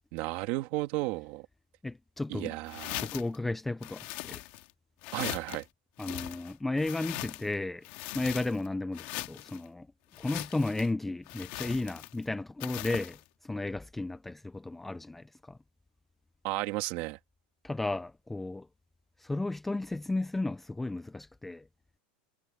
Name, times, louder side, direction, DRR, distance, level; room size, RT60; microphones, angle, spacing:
voice 1, 0.1-1.5 2.3-3.1 5.1-5.6 16.4-17.2, right 20 dB, 45° right, 2.5 m, -33 dB
voice 2, 1.8-2.5 3.0-4.4 6.0-7.8 8.1-9.9 10.2-15.6 17.6-18.7 19.2-21.7, left 2 dB, 5° left, 0.4 m, -34 dB
sound 1, 2.7-3.4 3.8-4.7 5.0-5.6 6.0-7.5 7.8-8.7 8.9-9.6 10.1-10.9 11.3-12.2 12.6-13.2, left 19 dB, 45° left, 1.9 m, -40 dB
supercardioid pair, 175°, 4 cm